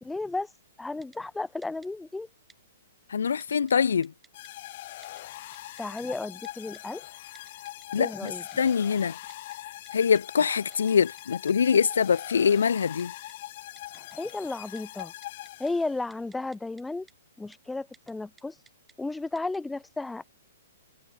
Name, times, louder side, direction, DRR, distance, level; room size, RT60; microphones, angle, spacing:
voice 1, 0.0-0.5 0.8-2.3 5.8-7.0 7.9-8.4 13.9-15.1 15.6-17.1 17.4-18.6 19.0-20.2, left 2 dB, 5° left, 1.9 m, -33 dB
Typing, 1.0-1.2 1.6-1.9 2.5-2.6 3.4-3.7 4.0-4.5 5.0-5.2 5.5-6.0 6.4-6.8 7.4-7.9 8.3-8.9 9.3-9.6 9.9-10.0 10.2-10.3 10.5-10.9 11.2-11.3 11.5-11.8 12.3-12.4 13.0-13.4 13.8-14.3 14.6-15.7 16.1-16.8 17.1-17.2 17.5-17.6 17.9-18.1 18.4-18.9 19.4-19.6, right 4 dB, 10° right, 7.0 m, -57 dB
voice 2, 3.1-4.1 7.9-8.3 8.6-9.2 9.9-13.1, left 6 dB, 75° left, 0.3 m, -24 dB
sound 1, 4.3-16.2, left 15 dB, 50° left, 4.9 m, -42 dB
hypercardioid pair, 125°, 0 cm